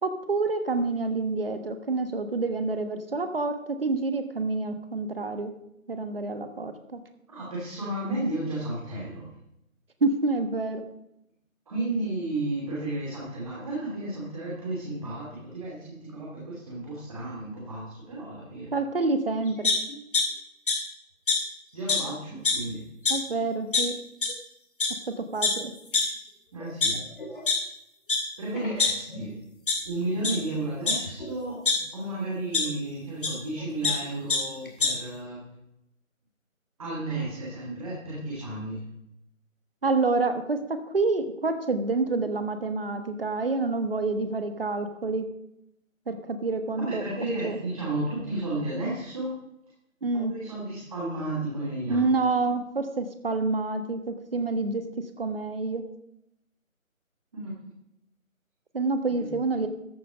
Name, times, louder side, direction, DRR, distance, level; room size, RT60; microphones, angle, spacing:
voice 1, 0.0-5.5 5.9-7.0 10.0-10.8 18.7-19.7 23.1-24.0 25.2-25.7 39.8-45.3 46.1-47.0 47.4-47.6 50.0-50.3 51.9-54.8 55.2-55.8 58.7-59.7, right 3 dB, 40° right, 8 dB, 1.3 m, -27 dB
voice 2, 7.3-9.3 11.7-18.7 21.7-22.8 26.5-27.0 28.4-29.3 29.8-35.4 36.8-38.8 46.8-49.4 50.3-52.1 57.3-57.5 59.1-59.3, right 2 dB, 25° right, -6 dB, 2.7 m, -33 dB
sound 1, 19.6-20.2 20.7-20.8 21.3-21.4 21.9-22.0 22.3-22.6 23.1-23.2 23.7-23.8 24.2-24.3 24.8-24.9 25.4-25.5 25.9-26.0 26.6-27.5 28.1-28.2 28.5-29.3 29.7-29.8 30.2-30.3 30.9-31.7 32.5-32.6 33.2-33.3 33.6-33.9 34.3-34.4 34.7-34.9, left 4 dB, 40° left, 2.3 m, -24 dB
13.5 x 8.0 x 5.1 m, 0.83 s
figure-of-eight pair, 165°, 42 cm